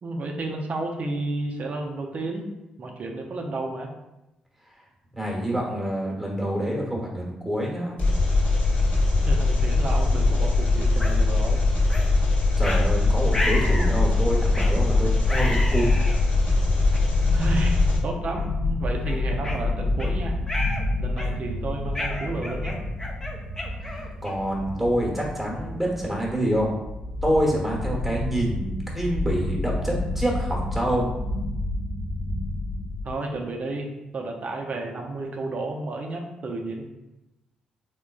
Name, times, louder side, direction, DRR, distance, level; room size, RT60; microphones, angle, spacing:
voice 1, 0.0-2.5 2.8-3.9 9.3-11.6 17.3-20.4 21.0-22.7 33.0-36.8, right 2 dB, 50° right, 2 dB, 0.5 m, -31 dB
voice 2, 5.1-8.0 12.6-16.0 23.9-26.7 27.2-31.1, equal, ahead, -2 dB, 1.1 m, -26 dB
Engine, 8.0-18.0, left 2 dB, 50° left, 0.9 m, -21 dB
sound 1, 11.0-11.1 11.9-12.1 12.6-12.8 13.3-13.9 14.5-14.8 15.3-16.2 16.9-17.0 17.7-17.9 18.4-18.5 19.0-20.1 20.5-20.8 21.2-21.5 21.9-24.5, left 1 dB, 15° left, 0.6 m, -32 dB
sound 2, 16.1-33.1, left 2 dB, 85° left, 0.6 m, -30 dB
3.6 x 2.2 x 2.3 m, 0.98 s
hypercardioid pair, 45°, 3 cm